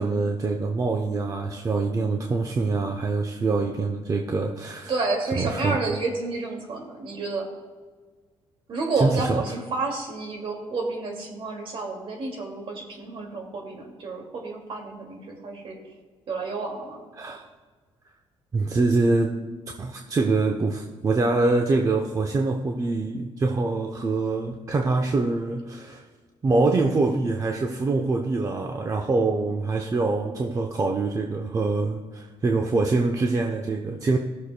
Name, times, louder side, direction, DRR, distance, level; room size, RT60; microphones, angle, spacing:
voice 1, 0.0-4.9 5.4-5.8 9.0-9.4 17.2-17.4 18.5-19.4 19.8-26.0 26.4-34.2, right 3 dB, 30° right, 2 dB, 0.7 m, -24 dB
voice 2, 4.9-7.5 8.7-15.8 16.3-17.0, right 3 dB, 55° right, 1 dB, 2.2 m, -30 dB
17.0 x 6.7 x 2.2 m, 1.4 s
cardioid pair, 105°, 11 cm